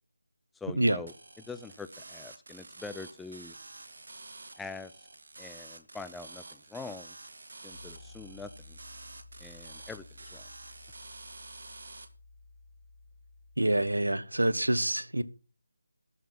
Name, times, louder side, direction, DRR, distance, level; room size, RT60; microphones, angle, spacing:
voice 1, 0.5-3.5 4.6-4.9 5.4-7.2 7.6-8.8 9.4-10.5 13.7-13.9, left 4 dB, 5° left, 0.5 m, -44 dB
sound 1, 1.1-12.1, right 3 dB, 60° right, 1.9 m, -49 dB
Piano, 7.7-14.0, left 3 dB, 35° left, 2.2 m, -54 dB
voice 2, 13.6-15.2, right 1 dB, 85° right, 1.1 m, -26 dB
13.0 x 5.9 x 7.1 m
figure-of-eight pair, 160°, 0 cm